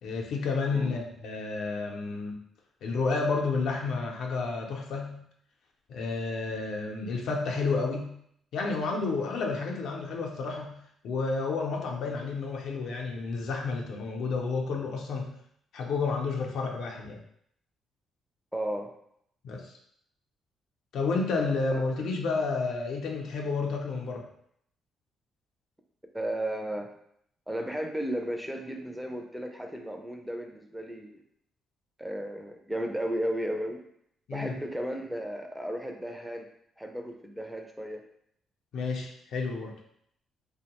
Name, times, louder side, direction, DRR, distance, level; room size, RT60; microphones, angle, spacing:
voice 1, 0.0-2.4 2.8-5.2 5.9-8.1 8.5-10.8 11.0-15.3 15.7-17.2 19.4-19.7 20.9-24.3 34.3-34.5 38.7-39.7, left 4 dB, 75° left, 0 dB, 0.5 m, -30 dB
voice 2, 18.5-18.9 26.1-26.9 27.5-31.2 32.0-33.8 34.3-36.5 36.8-38.0, right 1 dB, 5° right, 3 dB, 0.4 m, -34 dB
2.6 x 2.1 x 2.8 m, 0.70 s
cardioid pair, 90°, 0 cm